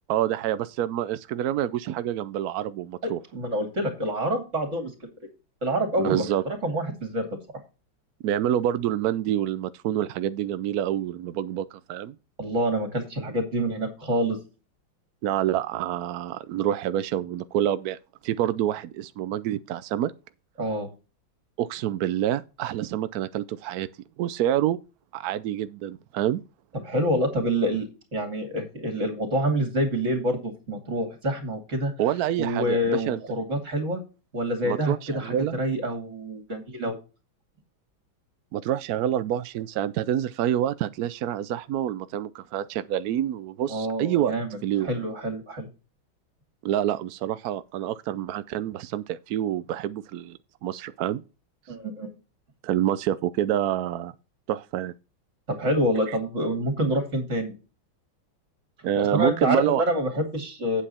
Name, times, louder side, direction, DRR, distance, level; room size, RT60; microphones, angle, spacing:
voice 1, 0.1-3.2 6.0-6.4 8.2-12.2 15.2-18.0 18.2-20.1 21.6-23.9 24.2-24.8 25.1-26.4 32.0-33.2 34.6-35.6 38.5-44.3 44.6-44.9 46.6-51.2 52.6-54.1 54.5-54.9 56.1-56.2 58.8-59.8, right 11 dB, 80° right, 0.8 m, -27 dB
voice 2, 3.0-4.9 5.6-7.3 12.4-14.4 20.6-20.9 26.8-31.9 32.4-34.0 34.3-37.0 43.7-44.5 44.8-45.7 51.7-52.1 55.5-57.5 58.9-60.8, equal, 35° right, 2.9 m, -27 dB
8.8 x 7.4 x 4.2 m
omnidirectional pair, 2.2 m